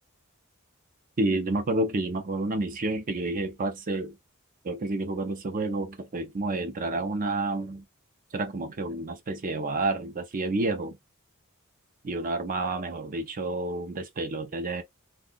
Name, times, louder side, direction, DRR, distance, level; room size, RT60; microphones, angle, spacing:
voice 1, 1.2-4.2 4.6-7.8 8.3-11.0 12.0-14.8, right 2 dB, 40° right, 0.5 m, -29 dB
2.5 x 2.3 x 3.7 m
head